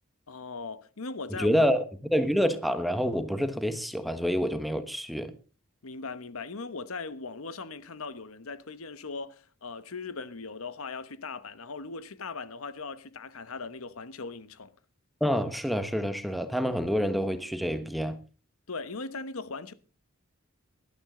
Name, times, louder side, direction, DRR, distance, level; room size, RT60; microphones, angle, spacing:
voice 1, 0.3-1.7 5.8-14.7 18.7-19.7, left 4 dB, 80° left, 1.1 m, -39 dB
voice 2, 1.3-1.8 2.1-5.3 15.2-18.2, equal, ahead, 1.1 m, -27 dB
19.0 x 12.0 x 3.8 m
head